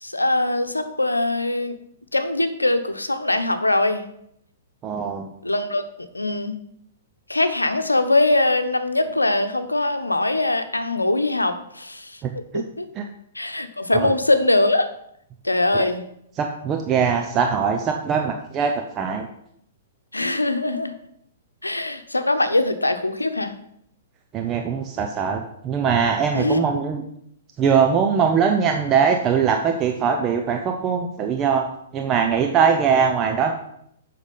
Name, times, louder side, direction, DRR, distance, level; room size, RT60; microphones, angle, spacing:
voice 1, 0.0-1.7 2.1-4.0 5.4-6.6 7.3-12.9 13.3-14.9 15.4-16.0 20.1-20.9 21.6-23.5 26.3-26.6, left 2 dB, 85° left, 9 dB, 0.9 m, -22 dB
voice 2, 4.8-5.3 12.5-12.6 13.0-13.1 14.0-14.1 16.4-19.3 24.3-27.0 27.6-31.7 31.9-33.5, right 6 dB, 25° right, 4 dB, 0.8 m, -21 dB
8.1 x 5.8 x 5.6 m, 0.72 s
figure-of-eight pair, 110°, 0 cm